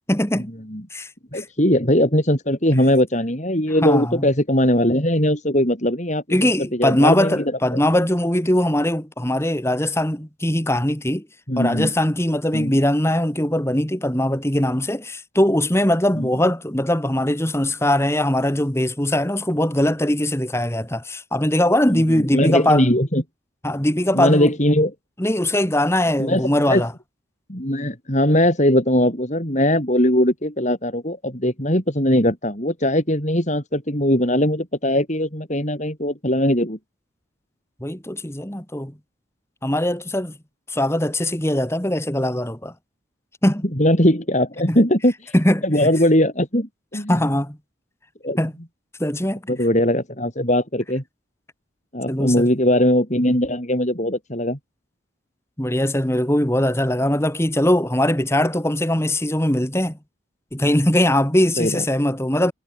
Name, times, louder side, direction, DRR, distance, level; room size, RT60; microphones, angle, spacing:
voice 1, 0.1-0.5 0.9-1.4 3.8-4.3 6.3-11.3 11.6-22.9 23.6-24.5 25.2-26.9 37.8-39.0 39.6-40.4 40.7-42.7 43.4-43.7 44.7-44.8 45.3-45.6 47.1-47.6 48.4-48.5 49.0-49.4 52.1-52.5 55.6-60.0 60.5-62.5, left 1 dB, 15° left, 2.7 m, -21 dB
voice 2, 1.3-7.4 11.5-11.9 12.5-12.8 16.2-16.3 21.9-23.2 24.1-24.9 26.2-26.8 27.5-36.8 43.8-45.3 45.6-47.2 48.2-48.4 49.5-51.0 51.9-54.6 61.6-61.8, left 1 dB, 35° left, 7.7 m, -20 dB
head